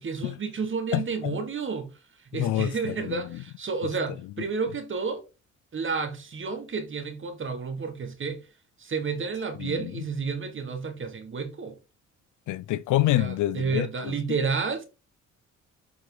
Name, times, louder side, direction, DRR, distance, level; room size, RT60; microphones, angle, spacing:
voice 1, 0.0-1.9 2.3-5.2 5.7-8.4 8.8-11.8 13.2-14.9, right 5 dB, 40° right, 1.7 m, -31 dB
voice 2, 0.9-1.4 2.3-3.2 9.6-9.9 12.5-14.1, left 15 dB, 80° left, 0.6 m, -27 dB
7.3 x 4.7 x 3.9 m
cardioid pair, 90°, 30 cm